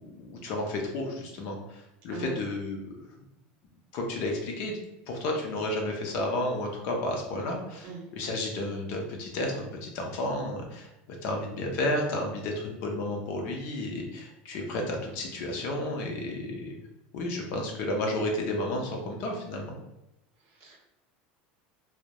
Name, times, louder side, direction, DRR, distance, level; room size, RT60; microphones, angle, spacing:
voice 1, 0.0-2.8 3.9-4.8 5.1-16.7 17.1-19.7, left 1 dB, 50° left, 1 dB, 0.5 m, -32 dB
voice 2, 2.1-2.5 7.8-8.0 20.4-20.8, right 6 dB, 55° right, 0 dB, 0.7 m, -41 dB
2.2 x 2.0 x 2.7 m, 0.89 s
cardioid pair, 165°, 5 cm